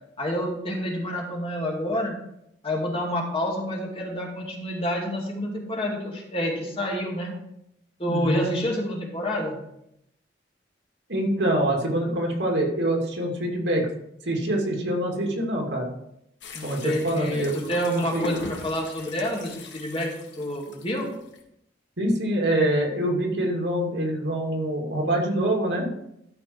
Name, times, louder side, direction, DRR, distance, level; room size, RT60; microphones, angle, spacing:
voice 1, 0.2-2.1 2.6-7.3 8.0-9.6 16.5-20.1 20.4-21.1, equal, 30° left, -2 dB, 2.4 m, -28 dB
voice 2, 8.1-8.5 11.1-13.9 14.2-15.9 16.6-17.7 17.9-18.4 22.0-25.9, right 1 dB, 75° right, 0 dB, 2.5 m, -25 dB
sound 1, 16.4-21.4, left 3 dB, 85° left, 1.7 m, -41 dB
12.5 x 5.3 x 4.5 m, 0.78 s
head